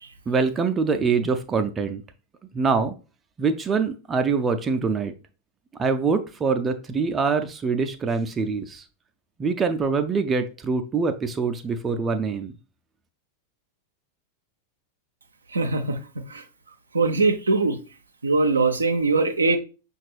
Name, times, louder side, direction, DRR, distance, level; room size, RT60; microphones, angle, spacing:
voice 1, 0.3-2.0 2.5-2.9 3.4-5.1 5.8-8.8 9.4-12.5, right 5 dB, 20° right, 0.4 m, -24 dB
voice 2, 15.5-16.4 16.9-17.8 18.2-19.6, right 3 dB, 75° right, 0.5 m, -22 dB
5.7 x 2.4 x 3.2 m
figure-of-eight pair, 90°, 0 cm